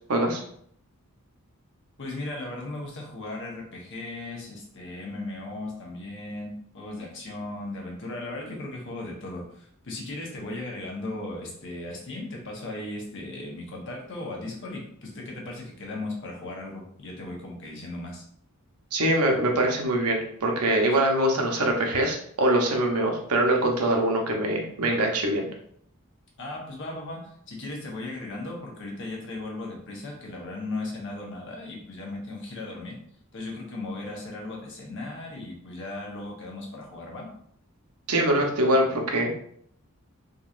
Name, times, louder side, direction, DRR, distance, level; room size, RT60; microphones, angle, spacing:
voice 1, 0.1-0.4 18.9-25.5 38.1-39.3, right 1 dB, 85° right, 1 dB, 0.8 m, -23 dB
voice 2, 2.0-18.2 26.4-33.0 33.3-37.3, left 2 dB, 60° left, -1 dB, 1.0 m, -37 dB
3.8 x 2.9 x 2.5 m, 0.65 s
head